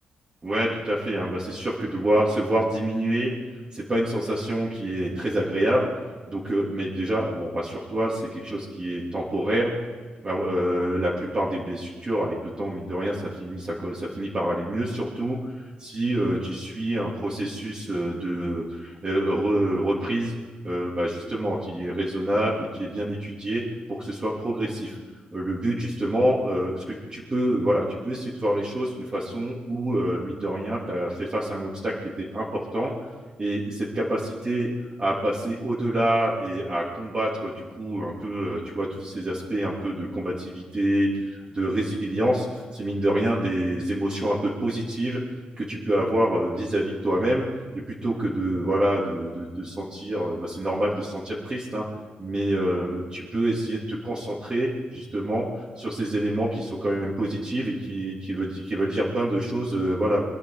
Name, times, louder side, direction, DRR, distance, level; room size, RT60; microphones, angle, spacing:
voice 1, 0.4-3.3 3.7-5.9 6.3-9.7 10.2-15.5 15.8-20.3 20.6-23.6 23.9-25.0 25.3-32.9 33.4-34.7 35.0-45.2 45.6-47.5 47.7-51.9 52.2-60.2, right 1 dB, 30° right, -7 dB, 3.2 m, -27 dB
24.5 x 11.0 x 5.1 m, 1.4 s
cardioid pair, 100°, 3 cm